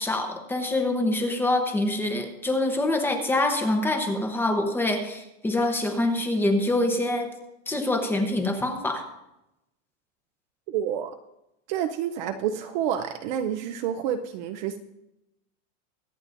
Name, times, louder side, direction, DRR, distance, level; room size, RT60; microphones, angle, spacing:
voice 1, 0.0-7.3 7.7-9.0, left 2 dB, 5° left, 5 dB, 0.8 m, -25 dB
voice 2, 10.7-11.1 11.7-14.8, right 9 dB, 35° right, 8 dB, 0.6 m, -29 dB
23.5 x 8.9 x 2.6 m, 0.90 s
supercardioid pair, 160°, 39 cm